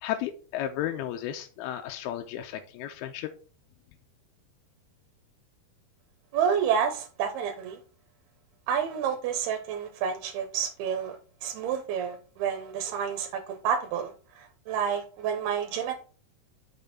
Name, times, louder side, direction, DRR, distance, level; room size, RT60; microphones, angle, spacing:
voice 1, 0.0-3.3, left 11 dB, 85° left, 5 dB, 2.6 m, -33 dB
voice 2, 6.3-7.8 8.7-11.2 11.4-15.9, right 7 dB, 90° right, 4 dB, 3.0 m, -29 dB
7.2 x 6.0 x 4.2 m, 0.38 s
omnidirectional pair, 4.4 m